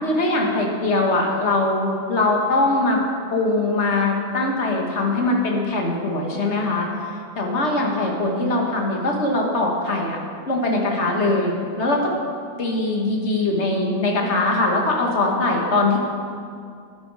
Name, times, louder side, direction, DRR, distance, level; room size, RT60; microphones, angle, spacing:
voice 1, 0.0-3.0 3.3-6.9 7.3-10.2 10.5-12.1 12.6-16.0, left 2 dB, 40° left, 0 dB, 1.6 m, -21 dB
11.5 x 10.5 x 4.8 m, 2.3 s
omnidirectional pair, 2.1 m